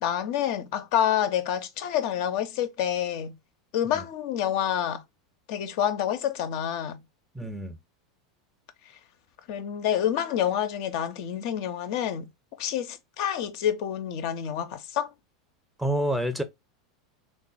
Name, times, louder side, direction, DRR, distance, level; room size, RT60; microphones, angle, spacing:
voice 1, 0.0-3.3 3.7-5.0 5.5-7.0 9.5-12.3 12.6-15.1, left 10 dB, 55° left, 0.4 m, -28 dB
voice 2, 7.3-7.8 15.8-16.4, right 1 dB, 5° right, 0.5 m, -28 dB
3.3 x 2.1 x 2.4 m
figure-of-eight pair, 85°, 2 cm